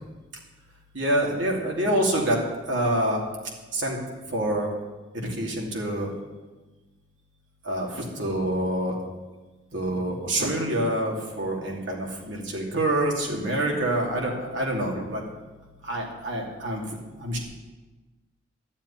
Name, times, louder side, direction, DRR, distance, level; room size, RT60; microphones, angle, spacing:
voice 1, 0.9-2.4 2.7-3.2 3.7-4.0 4.3-4.7 5.1-6.1 7.6-9.0 9.7-15.2 15.8-16.8 17.2-17.4, right 1 dB, 70° right, -1 dB, 2.8 m, -26 dB
13.0 x 7.3 x 9.9 m, 1.2 s
head